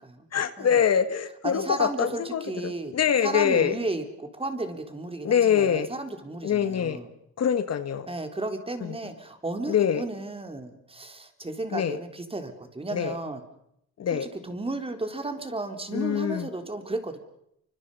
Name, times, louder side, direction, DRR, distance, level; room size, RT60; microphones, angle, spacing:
voice 1, 0.3-3.7 5.2-5.9 6.4-7.0 7.4-8.1 8.8-8.9 9.7-10.0 11.7-12.0 12.9-13.1 14.0-14.3 15.9-16.5, left 8 dB, 55° left, 11 dB, 1.8 m, -24 dB
voice 2, 1.4-2.9 3.2-7.1 8.1-13.4 14.1-17.2, right 2 dB, 20° right, 6 dB, 3.7 m, -34 dB
29.0 x 25.0 x 5.6 m, 0.76 s
cardioid pair, 90°, 30 cm